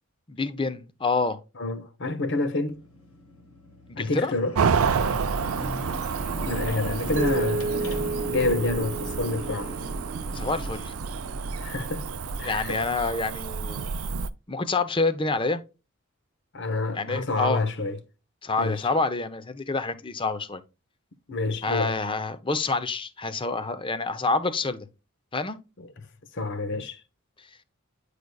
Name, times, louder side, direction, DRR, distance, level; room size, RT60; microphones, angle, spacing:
voice 1, 0.3-1.4 3.9-4.3 10.3-10.9 12.4-13.9 14.5-15.6 16.9-17.7 18.4-20.6 21.6-24.9 25.3-25.6 27.4-27.5, left 3 dB, 25° left, 0.6 m, -27 dB
voice 2, 1.6-2.8 3.9-4.5 6.5-7.8 8.3-9.7 11.6-12.0 12.4-12.8 16.5-18.0 18.6-18.8 21.3-22.0 26.3-27.0, left 2 dB, 55° left, 0.9 m, -28 dB
sound 1, 2.7-12.4, right 1 dB, 85° left, 1.2 m, -38 dB
Cricket / Motor vehicle (road), 4.5-14.3, right 5 dB, 80° right, 0.5 m, -30 dB
Mallet percussion, 7.2-10.1, right 3 dB, 35° right, 0.6 m, -31 dB
9.3 x 5.0 x 2.3 m
head